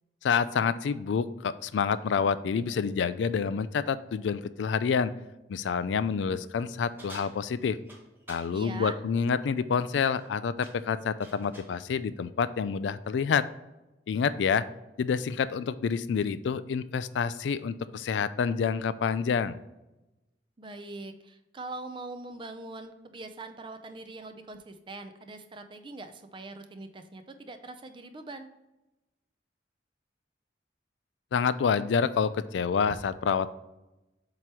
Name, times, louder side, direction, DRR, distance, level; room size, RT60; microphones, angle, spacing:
voice 1, 0.2-5.1 5.5-7.8 8.3-13.5 14.1-14.6 15.0-19.6 31.3-33.5, left 6 dB, 80° left, 15 dB, 0.3 m, -28 dB
sound 1, 7.0-8.5 10.0-10.3 10.6-11.8, right 1 dB, 10° right, 1.3 m, -49 dB
voice 2, 8.5-9.0 20.6-28.5, right 2 dB, 30° right, 8 dB, 0.5 m, -42 dB
7.6 x 3.0 x 4.7 m, 0.99 s
head